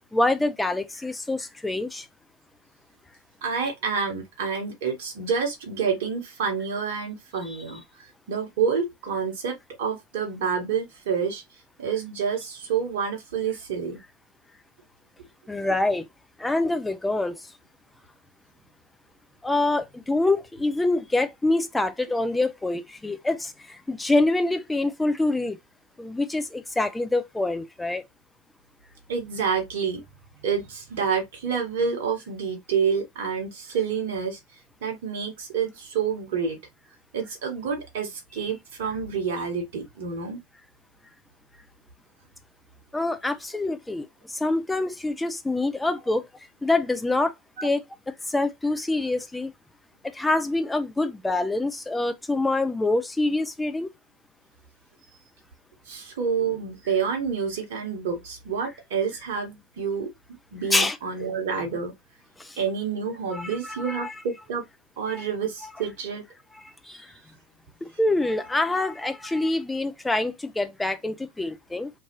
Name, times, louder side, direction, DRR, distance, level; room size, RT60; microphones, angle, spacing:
voice 1, 0.1-2.1 7.5-7.6 15.5-16.1 16.4-17.5 19.4-25.6 26.0-28.0 42.9-46.3 46.6-47.3 47.6-49.5 50.1-53.9 60.7-61.0 62.4-62.6 63.3-64.1 65.1-65.3 66.8-67.1 67.8-71.9, left 2 dB, 5° left, 0.3 m, -26 dB
voice 2, 3.4-11.4 11.8-14.0 29.1-30.0 30.4-34.4 34.8-36.6 37.1-40.4 47.6-47.7 55.9-60.1 60.5-61.9 62.6-64.6 65.0-66.2, right 6 dB, 55° right, 0.8 m, -28 dB
2.6 x 2.3 x 2.8 m
figure-of-eight pair, 85°, 0 cm